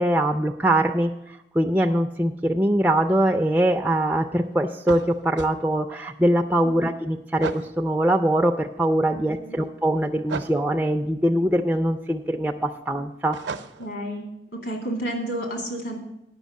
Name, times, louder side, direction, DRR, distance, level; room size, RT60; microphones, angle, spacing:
voice 1, 0.0-13.4, right 1 dB, 10° right, 3 dB, 0.3 m, -22 dB
sound 1, 4.8-5.5 7.4-7.7 10.3-10.6 13.3-13.9, right 4 dB, 75° right, 0.6 m, -33 dB
voice 2, 9.1-9.6 13.8-14.3 14.5-15.9, right 1 dB, 70° left, 2 dB, 2.4 m, -31 dB
9.4 x 5.8 x 8.1 m, 0.83 s
head